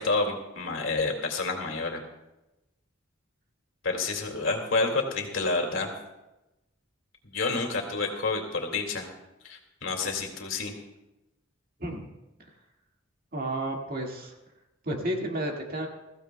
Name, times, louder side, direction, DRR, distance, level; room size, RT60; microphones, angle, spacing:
voice 1, 0.0-2.0 3.8-5.9 7.2-9.1 9.4-10.7, left 3 dB, 75° left, 2 dB, 2.2 m, -29 dB
voice 2, 11.8-12.1 13.3-14.3 14.8-15.9, right 1 dB, 45° right, 1 dB, 1.9 m, -31 dB
22.0 x 15.0 x 2.2 m, 0.98 s
head